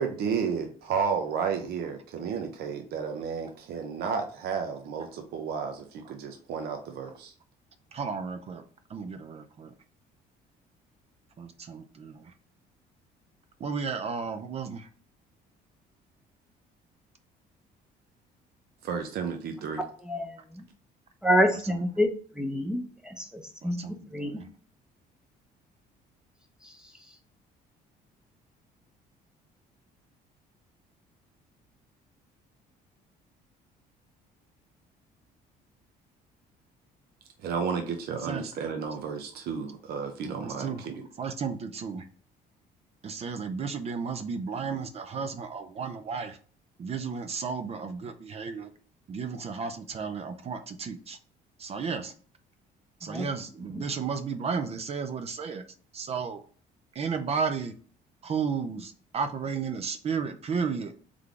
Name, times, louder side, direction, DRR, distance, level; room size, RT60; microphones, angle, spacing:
voice 1, 0.0-7.3 18.8-19.8 37.4-41.1, right 6 dB, 70° right, 0.7 m, -32 dB
voice 2, 7.9-8.6 8.9-9.7 11.4-12.2 13.6-14.9 21.6-21.8 23.6-24.5 38.2-38.4 40.3-40.8 41.2-42.0 43.0-46.4 46.8-48.7 49.1-51.2 51.6-52.1 53.0-55.6 55.9-56.4 57.0-57.7 58.2-60.9, right 5 dB, 35° right, 0.5 m, -33 dB
voice 3, 21.2-22.1 22.4-23.8 24.1-24.3 53.1-53.2, equal, 5° right, 0.7 m, -26 dB
3.7 x 3.3 x 3.5 m
cardioid pair, 110°, 17 cm